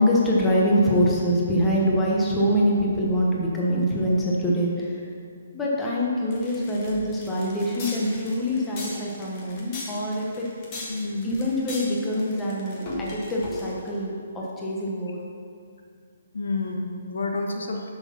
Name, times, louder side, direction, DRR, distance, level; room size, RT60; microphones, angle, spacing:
voice 1, 0.0-5.1 5.5-10.5 10.7-10.8 11.2-15.2, equal, 10° left, -4 dB, 1.2 m, -24 dB
sound 1, 6.3-14.0, left 2 dB, 25° left, 1.5 m, -38 dB
voice 2, 10.9-11.3 16.3-17.9, left 3 dB, 85° left, 1 dB, 1.4 m, -29 dB
7.7 x 6.6 x 5.8 m, 2.3 s
hypercardioid pair, 165°, 0 cm